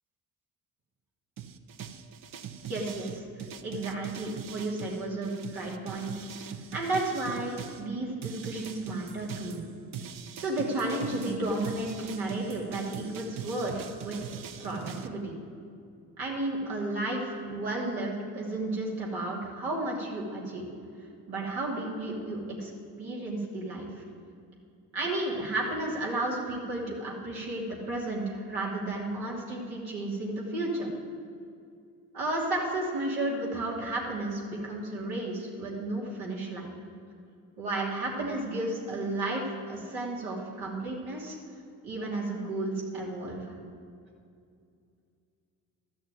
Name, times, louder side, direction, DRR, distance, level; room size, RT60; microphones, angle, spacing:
sound 1, 1.4-7.8 8.2-15.1, right 8 dB, 65° right, 0.9 m, -42 dB
voice 1, 2.7-6.1 6.7-9.6 10.4-14.3 14.6-15.3 16.2-20.6 21.3-22.7 23.0-24.0 24.9-30.9 32.1-36.7 37.6-41.4 41.8-43.5, right 2 dB, 80° right, -4 dB, 2.9 m, -33 dB
12.5 x 6.4 x 9.3 m, 2.4 s
supercardioid pair, 65°, 36 cm